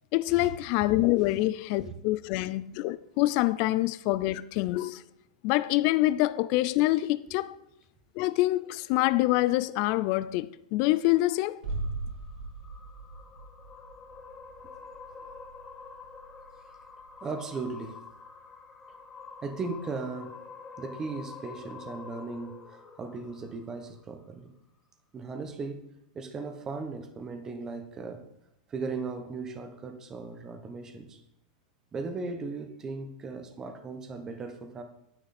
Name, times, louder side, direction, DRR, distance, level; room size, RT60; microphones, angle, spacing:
voice 1, 0.1-5.0 5.4-7.5 8.2-11.6, left 17 dB, 35° left, 0.3 m, -26 dB
sound 1, 11.6-17.4 17.6-17.7, right 3 dB, 85° right, 2.7 m, -40 dB
sound 2, 11.7-24.2, left 4 dB, 10° left, 0.8 m, -48 dB
voice 2, 17.2-18.0 19.4-20.3 20.8-24.5 25.1-25.8 26.1-28.2 28.7-31.2 31.9-34.8, right 4 dB, 15° right, 1.0 m, -37 dB
10.5 x 9.7 x 4.2 m
supercardioid pair, 170°, 4 cm